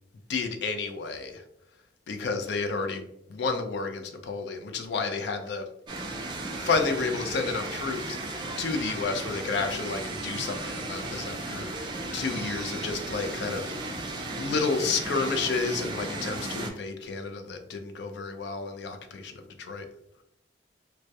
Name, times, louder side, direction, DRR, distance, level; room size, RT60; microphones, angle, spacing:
voice 1, 0.3-1.4 2.1-5.7 6.6-14.0 14.4-19.3 19.6-19.9, left 4 dB, 80° left, 6 dB, 0.4 m, -31 dB
sound 1, 5.9-16.7, right 2 dB, 25° right, 0.3 m, -35 dB
2.2 x 2.0 x 2.7 m, 0.78 s
head